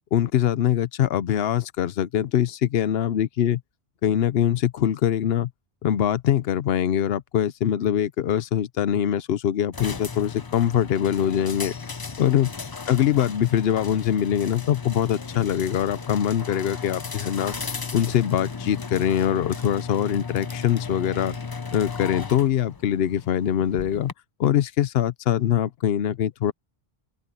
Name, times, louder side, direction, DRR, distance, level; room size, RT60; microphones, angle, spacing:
voice 1, 0.1-3.6 4.0-5.5 5.8-11.8 12.2-12.5 12.9-17.6 17.9-21.4 21.7-24.1 24.4-26.5, left 10 dB, 70° left, 0.9 m, -23 dB
sound 1, 9.7-24.1, left 4 dB, 25° left, 0.6 m, -35 dB
open air
omnidirectional pair, 1.1 m